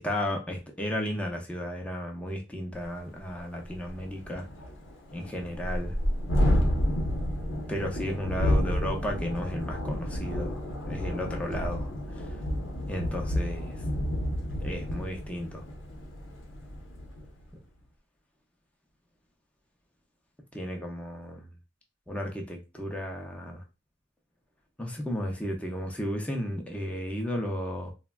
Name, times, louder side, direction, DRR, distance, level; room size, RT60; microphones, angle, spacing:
voice 1, 0.0-4.5 5.1-6.0 7.7-10.6 10.9-12.4 12.9-13.8 14.6-15.7 20.5-21.5 22.1-23.6 24.8-27.9, equal, 5° left, 0.5 m, -34 dB
Thunderstorm, 2.8-2.9 3.3-3.4 3.7-17.3, equal, 75° left, 0.8 m, -30 dB
3.3 x 2.1 x 2.2 m
head